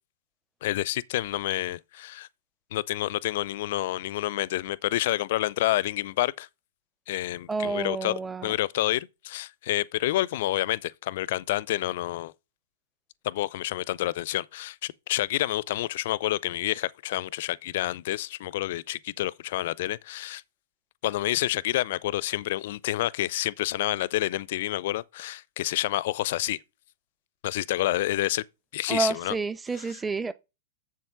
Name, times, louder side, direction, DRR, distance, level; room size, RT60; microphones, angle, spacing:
voice 1, 0.6-2.3 2.7-6.5 7.1-8.1 8.4-12.3 13.2-20.4 21.0-26.6 27.4-28.4 28.7-29.4, left 15 dB, 50° left, 0.5 m, -28 dB
voice 2, 7.5-8.5 28.9-30.3, right 4 dB, 10° right, 0.7 m, -29 dB
7.5 x 7.4 x 6.0 m
figure-of-eight pair, 100°, 0 cm